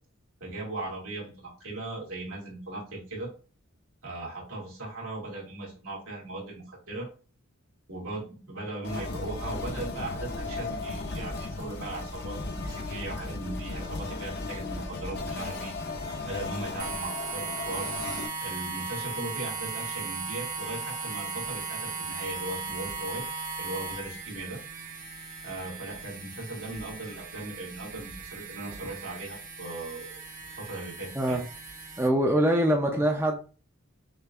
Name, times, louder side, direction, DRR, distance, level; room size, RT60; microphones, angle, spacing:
voice 1, 0.4-3.3 4.0-7.1 7.9-15.7 16.2-17.9 18.4-23.2 23.6-24.6 25.4-30.2 30.5-31.4, right 2 dB, 80° right, 2.3 m, -38 dB
sound 1, 8.8-18.3, left 3 dB, 50° left, 0.6 m, -35 dB
Small electronic motor, 16.8-32.1, right 4 dB, 35° right, 0.9 m, -37 dB
voice 2, 32.0-33.4, right 1 dB, 10° right, 0.5 m, -24 dB
6.6 x 2.5 x 2.4 m
head